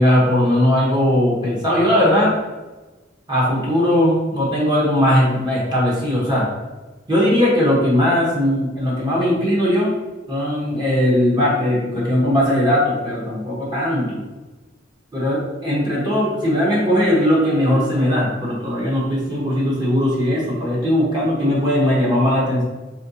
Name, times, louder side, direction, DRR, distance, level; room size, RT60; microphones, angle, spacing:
voice 1, 0.0-2.4 3.3-6.5 7.1-9.9 10.3-14.2 15.1-22.6, equal, 25° right, -6 dB, 1.1 m, -19 dB
4.3 x 3.1 x 2.8 m, 1.2 s
head